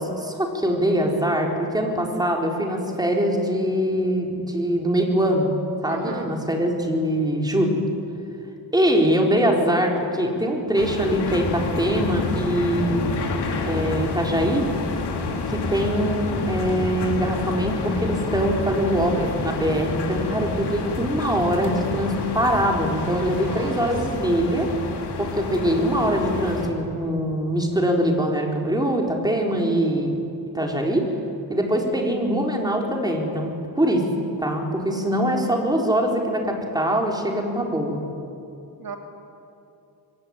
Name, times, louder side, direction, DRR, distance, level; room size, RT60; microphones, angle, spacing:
voice 1, 0.0-5.5 5.8-7.8 8.7-13.2 13.6-14.7 15.5-24.7 25.2-30.2 30.5-31.1 31.5-34.1 34.4-38.0, equal, 10° right, 1 dB, 4.2 m, -23 dB
voice 2, 5.9-6.3 23.4-23.9 38.8-39.0, right 6 dB, 65° right, 3 dB, 2.7 m, -35 dB
sound 1, 10.7-26.7, left 3 dB, 80° left, 3.7 m, -28 dB
25.0 x 23.5 x 9.8 m, 2.7 s
wide cardioid pair, 125°, 39 cm